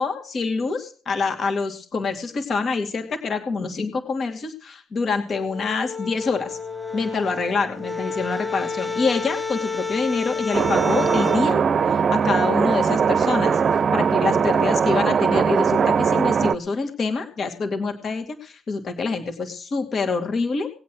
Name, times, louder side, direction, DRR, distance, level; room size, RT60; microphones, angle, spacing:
voice 1, 0.0-6.6 6.9-11.6 11.9-20.7, left 4 dB, 50° left, 5 dB, 2.5 m, -26 dB
sound 1, 5.3-11.4, left 4 dB, 15° left, 1.2 m, -30 dB
sound 2, 10.5-16.6, right 6 dB, 50° right, 0.6 m, -20 dB
19.5 x 8.6 x 6.2 m, 0.40 s
cardioid pair, 90°, 0 cm